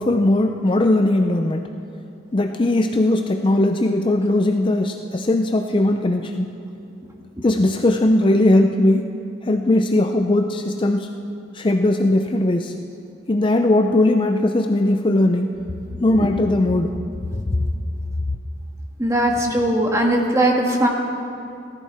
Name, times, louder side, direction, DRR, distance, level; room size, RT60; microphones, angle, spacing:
voice 1, 0.0-1.6 2.3-6.5 7.4-9.1 9.4-11.1 11.5-12.7 13.3-15.5 16.0-17.0, left 1 dB, 25° left, 5 dB, 0.4 m, -19 dB
voice 2, 16.0-16.3 19.0-20.9, right 1 dB, 15° right, 0 dB, 1.6 m, -19 dB
18.5 x 13.5 x 4.3 m, 2.7 s
head